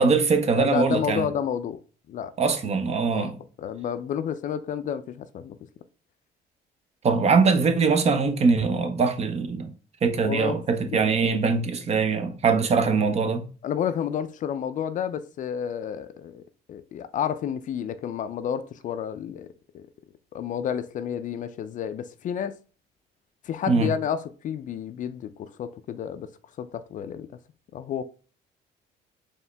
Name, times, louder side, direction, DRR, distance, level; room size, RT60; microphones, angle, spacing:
voice 1, 0.0-1.3 2.4-3.4 7.0-9.7 10.0-13.4 23.7-23.9, right 4 dB, 40° right, 0.8 m, -22 dB
voice 2, 0.6-1.8 2.1-2.3 3.1-3.3 3.6-5.6 10.2-10.6 10.9-11.0 13.6-19.9 20.3-22.6 23.4-27.3 27.7-28.0, left 8 dB, 50° left, 0.4 m, -30 dB
4.5 x 3.1 x 3.3 m
cardioid pair, 110°, 17 cm